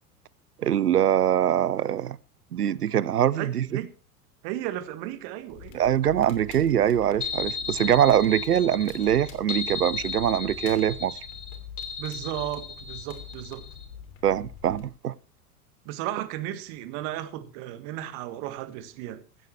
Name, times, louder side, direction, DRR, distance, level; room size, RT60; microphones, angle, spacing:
voice 1, 0.6-2.2 2.5-3.7 5.7-11.2 14.2-15.1, right 10 dB, 80° right, 0.7 m, -23 dB
voice 2, 3.4-3.9 4.4-5.8 12.0-13.6 15.8-19.2, right 13 dB, 45° right, 1.6 m, -34 dB
Crackle, 5.5-14.9, left 8 dB, 55° left, 3.0 m, -45 dB
sound 1, 7.2-13.9, left 6 dB, 75° left, 3.0 m, -35 dB
16.0 x 14.0 x 3.2 m
figure-of-eight pair, 85°, 46 cm